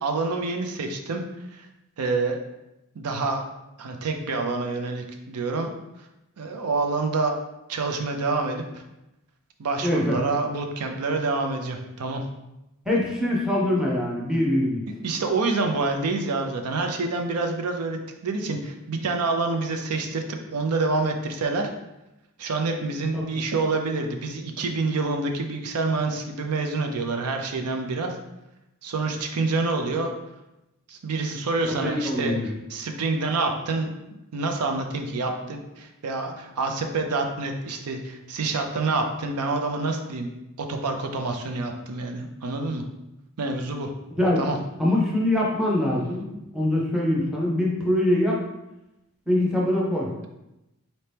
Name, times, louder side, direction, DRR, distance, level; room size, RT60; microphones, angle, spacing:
voice 1, 0.0-1.2 1.5-1.7 2.0-2.4 3.0-3.4 3.8-5.7 6.4-7.4 7.7-8.8 9.6-12.2 15.0-21.7 22.4-28.1 28.8-30.1 30.9-32.3 32.7-33.9 34.3-40.3 40.6-42.8 43.4-43.9 44.4-44.6, right 3 dB, 90° right, 4 dB, 0.5 m, -27 dB
voice 2, 9.8-10.2 12.9-14.8 23.1-23.2 31.6-32.5 44.2-44.4 44.8-48.4 49.3-50.1, left 1 dB, ahead, -4 dB, 0.7 m, -23 dB
4.2 x 2.8 x 3.4 m, 0.93 s
head